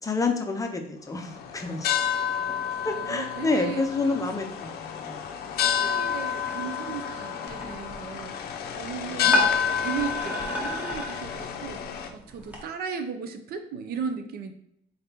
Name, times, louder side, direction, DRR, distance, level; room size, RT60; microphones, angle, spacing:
voice 1, 0.0-1.9 2.8-5.2 9.1-9.3, left 3 dB, 20° left, 4 dB, 0.6 m, -28 dB
sound 1, 1.2-12.1, left 8 dB, 70° left, 0.5 m, -30 dB
voice 2, 2.9-3.8 5.8-8.4 8.8-11.8 12.1-14.5, right 6 dB, 65° right, 7 dB, 0.5 m, -36 dB
sound 2, 7.5-12.6, equal, 10° right, 1.1 m, -33 dB
3.9 x 3.5 x 2.9 m, 0.75 s
cardioid pair, 110°, 17 cm